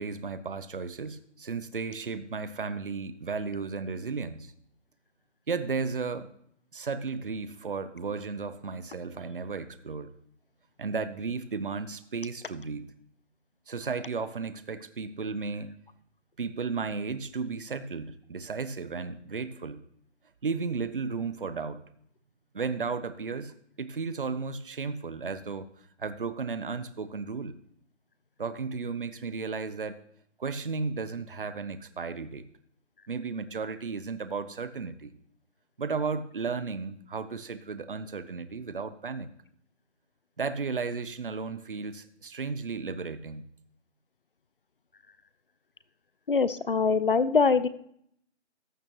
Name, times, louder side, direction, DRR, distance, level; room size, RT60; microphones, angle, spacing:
voice 1, 0.0-4.5 5.5-6.3 6.7-10.1 10.8-12.9 13.7-15.7 16.4-19.8 20.4-21.8 22.5-25.7 26.0-27.6 28.4-30.0 30.4-32.4 33.1-35.1 35.8-39.3 40.4-43.5, right 4 dB, 50° right, 13 dB, 0.7 m, -34 dB
voice 2, 46.3-47.7, left 5 dB, 50° left, 15 dB, 0.6 m, -23 dB
14.5 x 8.8 x 3.0 m, 0.68 s
hypercardioid pair, 175°, 35 cm